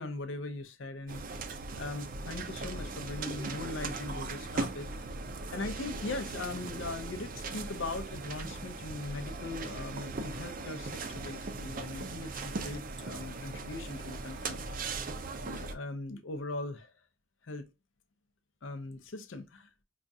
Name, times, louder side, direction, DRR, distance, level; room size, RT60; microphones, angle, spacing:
voice 1, 0.0-1.4 1.7-5.1 5.5-15.0 15.4-16.9 17.4-17.6 18.6-19.7, left 2 dB, 75° left, 0.6 m, -40 dB
sound 1, 1.1-15.8, right 3 dB, 45° right, 0.4 m, -39 dB
5.0 x 2.4 x 2.5 m
head